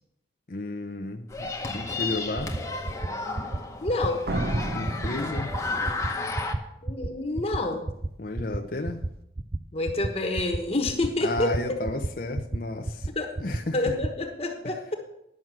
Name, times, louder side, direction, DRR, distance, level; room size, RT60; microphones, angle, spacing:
voice 1, 0.5-2.5 4.7-5.5 8.2-9.0 11.2-13.1 13.4-13.8, left 2 dB, 50° left, 3 dB, 0.7 m, -32 dB
sound 1, 1.3-6.6, left 3 dB, 15° left, 1.0 m, -33 dB
sound 2, 2.4-2.6 2.9-3.1 3.4-3.6 3.9-4.1 4.4-4.6 4.9-5.1 5.4-5.6 5.9-6.1 6.4-6.6 6.9-7.1 7.4-7.6 7.9-8.1 8.4-8.6 8.9-9.1 9.4-9.6 9.9-10.1 10.4-10.6 10.9-11.1 11.4-11.6 11.9-12.1 12.4-12.6 12.9-13.1 13.4-13.6 13.9-14.1, right 2 dB, 20° right, 0.4 m, -30 dB
voice 2, 3.8-4.3 6.8-7.9 9.7-11.5 13.1-13.3 13.7-15.0, left 2 dB, 35° left, 2 dB, 1.2 m, -28 dB
Slam, 4.3-6.2, right 1 dB, 55° right, 0.8 m, -32 dB
11.0 x 6.1 x 7.5 m, 0.81 s
head